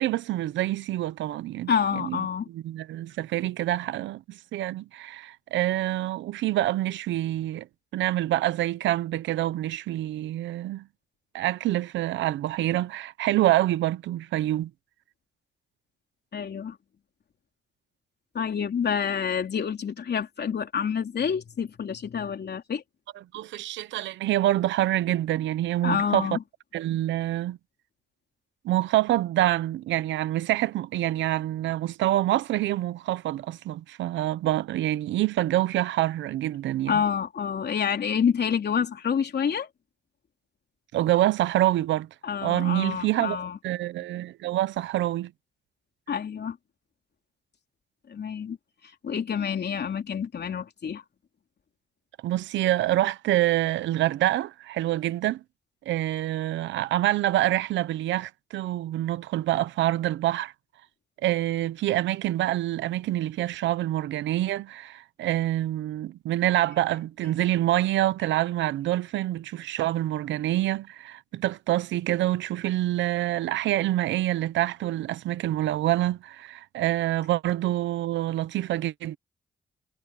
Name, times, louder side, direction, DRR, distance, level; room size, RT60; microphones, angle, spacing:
voice 1, 0.0-1.7 2.0-7.7 7.9-10.9 11.3-14.7 23.3-26.3 26.7-27.6 28.6-37.0 40.9-42.1 42.4-45.3 52.2-55.4 55.9-60.5 61.2-79.2, right 14 dB, 85° right, 0.9 m, -26 dB
voice 2, 1.7-2.5 16.3-16.8 18.3-22.8 25.8-26.4 36.9-39.7 42.2-43.6 46.1-46.6 48.1-48.6 49.0-51.0, left 7 dB, 65° left, 3.5 m, -28 dB
supercardioid pair, 45°, 19 cm